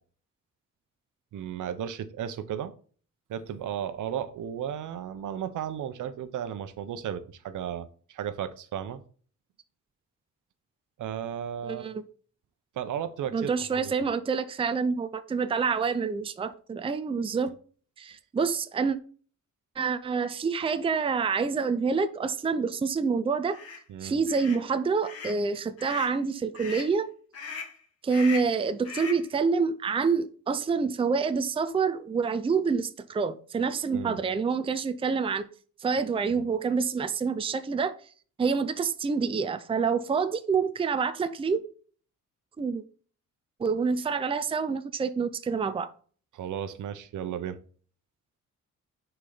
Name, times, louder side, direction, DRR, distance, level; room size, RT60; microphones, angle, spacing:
voice 1, 1.3-2.7 3.3-9.0 11.0-11.9 12.7-13.9 23.9-24.2 33.9-34.2 36.3-36.5 46.3-47.6, right 9 dB, 70° right, 1.0 m, -34 dB
voice 2, 11.6-12.0 13.3-17.5 18.0-19.0 19.8-23.6 24.0-27.1 28.0-35.5 35.8-37.9 38.4-41.6 42.6-42.8 43.6-45.9, right 5 dB, 20° right, 0.5 m, -27 dB
Screaming Duck, 23.5-23.8 24.3-24.6 25.0-25.4 25.8-26.2 26.5-26.9 27.3-27.8 28.1-28.6 28.8-29.3, left 5 dB, 50° left, 2.1 m, -39 dB
9.9 x 4.6 x 4.0 m
cardioid pair, 145°, 31 cm